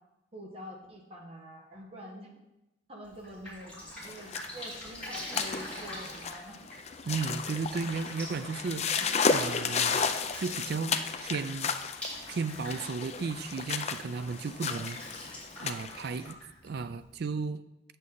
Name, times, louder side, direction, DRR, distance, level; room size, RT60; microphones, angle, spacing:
voice 1, 0.3-2.3 2.9-3.7 4.0-6.6, equal, 30° right, -1 dB, 1.5 m, -46 dB
Drip, 3.0-17.1, equal, 5° left, 3.6 m, -45 dB
sound 1, 4.0-16.3, left 5 dB, 35° left, 0.4 m, -33 dB
voice 2, 7.1-10.0 10.4-11.7 12.3-15.1 15.6-16.4 16.6-17.6, right 4 dB, 55° right, 12 dB, 0.4 m, -34 dB
8.5 x 7.8 x 3.9 m, 0.94 s
head